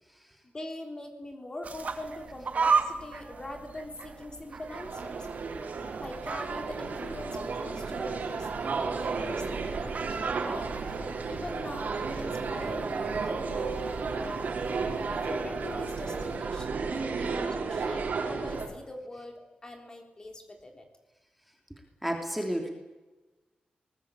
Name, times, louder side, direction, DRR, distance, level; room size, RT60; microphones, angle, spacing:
voice 1, 0.4-5.2 6.0-10.8 11.3-14.6 15.1-19.3 19.6-20.9, left 1 dB, 25° left, 3 dB, 3.5 m, -42 dB
sound 1, 1.6-16.4, right 5 dB, 55° right, 2.2 m, -37 dB
sound 2, 4.7-18.7, right 4 dB, 70° right, 4.4 m, -33 dB
voice 2, 22.0-22.7, equal, ahead, 2 dB, 3.1 m, -30 dB
23.5 x 20.0 x 8.4 m, 1.1 s
wide cardioid pair, 150°, 3 cm